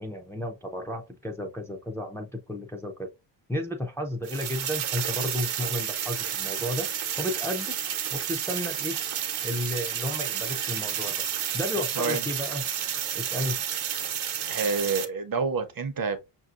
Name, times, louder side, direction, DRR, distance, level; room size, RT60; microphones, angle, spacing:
voice 1, 0.0-3.1 3.5-6.9 7.2-7.8 8.1-9.0 9.4-11.1 11.5-12.6 13.1-13.6, left 1 dB, 5° left, 0.5 m, -33 dB
sound 1, 4.2-15.0, right 9 dB, 75° right, 0.9 m, -31 dB
voice 2, 14.5-16.2, right 4 dB, 45° right, 0.7 m, -28 dB
5.6 x 2.8 x 2.4 m
wide cardioid pair, 115°, 49 cm